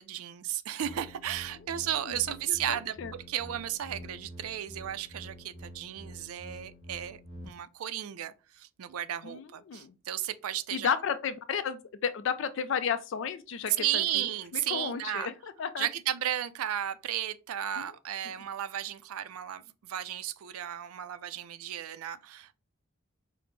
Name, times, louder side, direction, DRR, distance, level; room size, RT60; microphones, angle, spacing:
voice 1, 0.0-3.0 3.3-10.9 13.8-15.3 15.8-22.5, right 11 dB, 90° right, 0.4 m, -34 dB
sound 1, 0.8-7.5, equal, 20° right, 1.2 m, -47 dB
voice 2, 2.7-3.1 9.2-9.9 10.7-14.0 14.7-15.3 15.6-15.9 17.8-17.9, left 7 dB, 60° left, 0.3 m, -32 dB
4.9 x 2.0 x 3.2 m
head